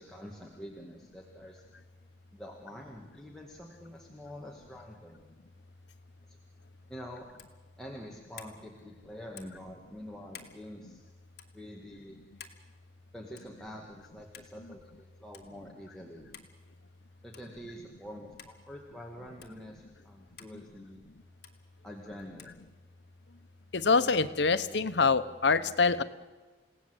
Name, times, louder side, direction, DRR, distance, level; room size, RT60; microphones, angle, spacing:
voice 1, 0.0-1.6 2.3-5.3 6.3-6.4 6.9-7.3 7.8-11.0 11.5-12.2 13.1-16.3 17.2-21.0 21.8-22.6, equal, 5° left, -2 dB, 2.0 m, -46 dB
sound 1, 7.3-7.6 8.3-8.6 9.3-9.6 10.3-10.6 11.3-11.5 12.4-12.6 13.4-13.6 14.3-14.5 15.3-15.5 16.3-16.5 17.3-17.5 18.4-18.5 19.4-19.5 20.4-20.5 21.4-21.6 22.4-22.6, left 8 dB, 60° left, 2.4 m, -50 dB
voice 2, 23.7-26.0, left 4 dB, 85° left, 13 dB, 1.0 m, -25 dB
29.5 x 17.5 x 8.1 m, 1.3 s
head